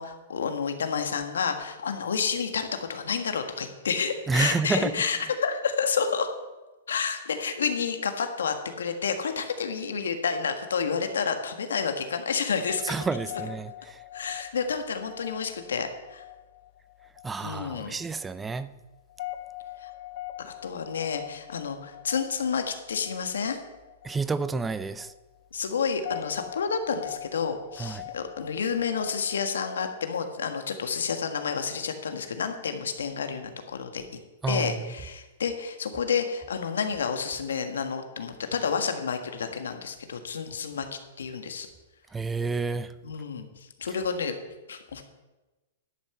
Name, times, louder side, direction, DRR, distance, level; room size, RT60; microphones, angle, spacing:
voice 1, 0.0-6.3 6.9-13.0 13.3-13.4 14.1-16.2 17.4-18.0 19.8-19.9 20.4-23.6 25.5-34.0 34.5-41.7 43.0-44.3 44.7-45.0, left 6 dB, 90° left, 1.6 m, -30 dB
voice 2, 4.3-4.9 12.8-14.0 17.2-18.7 24.0-25.1 27.8-28.0 34.4-34.8 42.1-42.9, right 4 dB, 10° right, 0.5 m, -29 dB
sound 1, 12.6-29.4, left 15 dB, 50° left, 0.6 m, -43 dB
11.0 x 5.7 x 8.1 m
hypercardioid pair, 145°, 0 cm